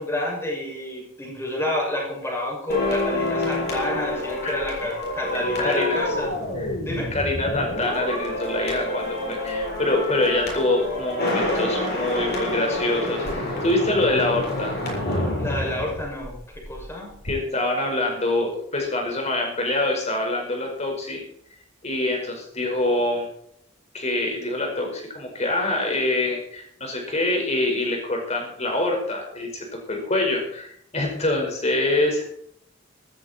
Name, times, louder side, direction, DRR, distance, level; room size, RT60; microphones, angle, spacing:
voice 1, 0.0-6.3 6.8-7.1 15.4-16.4 16.7-17.2, left 1 dB, 15° left, -3 dB, 6.8 m, -29 dB
sound 1, 2.7-16.8 17.1-17.3, left 1 dB, 55° left, 7.5 m, -28 dB
voice 2, 5.3-6.0 6.6-6.7 7.1-14.8 17.2-21.2 21.8-23.3 23.9-32.2, left 2 dB, 35° left, 1 dB, 5.3 m, -25 dB
15.0 x 13.5 x 4.5 m, 0.70 s
head